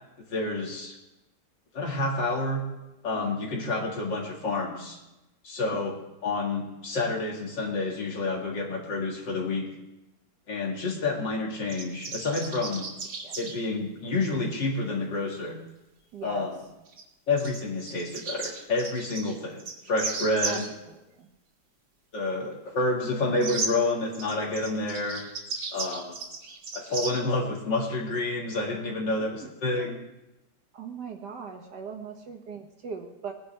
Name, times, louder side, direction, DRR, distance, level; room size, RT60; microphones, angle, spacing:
voice 1, 0.3-1.0 1.7-2.6 3.0-5.0 5.4-6.0 6.2-9.7 10.5-12.9 13.4-15.6 16.2-16.6 17.3-19.6 19.9-20.7 22.1-25.2 25.7-26.2 26.7-30.0, left 2 dB, 65° left, -1 dB, 2.7 m, -29 dB
sound 1, 11.7-13.5 16.9-17.0 17.4-20.7 23.4-23.7 24.1-27.2, right 4 dB, 80° right, 2.5 m, -35 dB
voice 2, 16.1-16.5 20.5-20.6 20.9-21.3 29.2-29.9 30.7-33.3, right 5 dB, 60° right, 3 dB, 1.8 m, -40 dB
20.5 x 10.0 x 3.4 m, 0.97 s
omnidirectional pair, 2.2 m